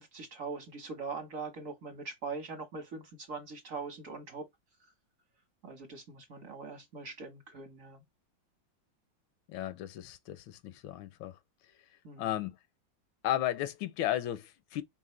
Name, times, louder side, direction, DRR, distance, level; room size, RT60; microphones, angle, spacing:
voice 1, 0.0-4.5 4.8-4.9 5.6-8.0 12.0-12.3, right 4 dB, 45° right, 1.4 m, -42 dB
voice 2, 9.5-11.4 12.2-12.6 13.2-14.8, left 12 dB, 85° left, 1.4 m, -34 dB
4.8 x 3.0 x 3.1 m
omnidirectional pair, 2.1 m